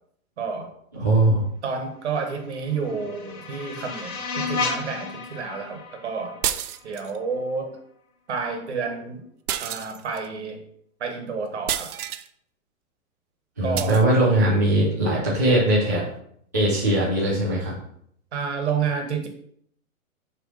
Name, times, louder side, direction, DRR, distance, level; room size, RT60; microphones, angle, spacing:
voice 1, 0.4-0.7 1.3-1.4 1.6-6.4 6.8-7.8 8.3-9.2 9.6-10.6 11.0-11.9 13.6-14.0 18.3-19.3, right 5 dB, 50° right, 5 dB, 1.3 m, -30 dB
voice 2, 0.9-1.4 13.6-16.0 16.5-17.7, right 1 dB, 15° right, -9 dB, 0.5 m, -20 dB
sound 1, 2.3-7.3, left 4 dB, 75° left, 1.8 m, -33 dB
sound 2, 6.4-7.2 9.5-10.3 11.7-12.3 13.8-14.0, right 11 dB, 85° right, 0.6 m, -29 dB
6.3 x 3.2 x 5.4 m, 0.68 s
hypercardioid pair, 175°, 43 cm